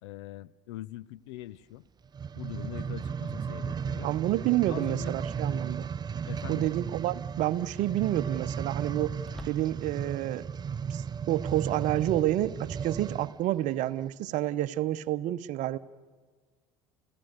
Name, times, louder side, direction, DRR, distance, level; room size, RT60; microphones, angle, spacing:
voice 1, 0.0-1.9 2.4-4.1 4.7-5.1 6.3-6.7, left 15 dB, 75° left, 20 dB, 0.6 m, -42 dB
sound 1, 2.1-13.4 14.0-14.1, right 7 dB, 30° right, 0.6 m, -35 dB
voice 2, 4.0-5.9 6.5-10.5 10.9-15.8, right 14 dB, 55° right, 13 dB, 0.9 m, -29 dB
sound 2, 9.3-10.1, left 2 dB, 5° left, 0.9 m, -49 dB
29.5 x 16.5 x 6.7 m, 1.5 s
hypercardioid pair, 70°, 15 cm